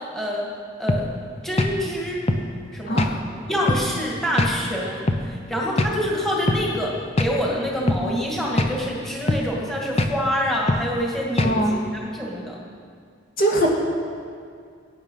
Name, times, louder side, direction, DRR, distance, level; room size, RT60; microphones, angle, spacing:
voice 1, 0.1-0.5 0.8-1.1 1.4-2.2 2.7-3.1 3.5-6.9 7.2-11.8 12.1-12.6, equal, ahead, -4 dB, 2.1 m, -26 dB
sound 1, 0.9-1.1 1.6-1.8 2.3-2.5 3.0-3.2 3.7-3.9 4.4-4.5 5.1-5.3 5.8-6.0 6.5-6.6 7.2-7.3 7.9-8.1 8.6-8.8 9.3-9.5 10.0-10.2 10.7-10.9 11.4-11.6, left 1 dB, 35° left, 0.9 m, -22 dB
voice 2, 11.4-11.8 13.4-13.7, right 1 dB, 50° left, -1 dB, 2.3 m, -21 dB
21.5 x 9.5 x 5.6 m, 2.2 s
head